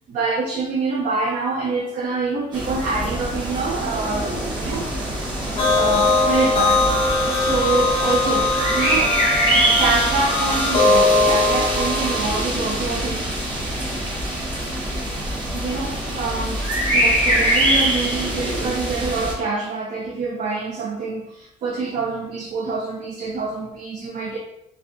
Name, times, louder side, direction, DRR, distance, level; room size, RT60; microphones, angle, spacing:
voice 1, 0.1-4.9 5.6-6.8 7.4-9.2 9.8-13.3 15.5-16.6 16.9-24.4, right 3 dB, 50° right, -1 dB, 0.4 m, -26 dB
sound 1, 2.5-19.3, right 1 dB, 25° right, 0.9 m, -24 dB
sound 2, 5.6-12.4, left 2 dB, 30° left, 0.5 m, -20 dB
2.3 x 2.1 x 3.7 m, 0.83 s
cardioid pair, 110°, 17 cm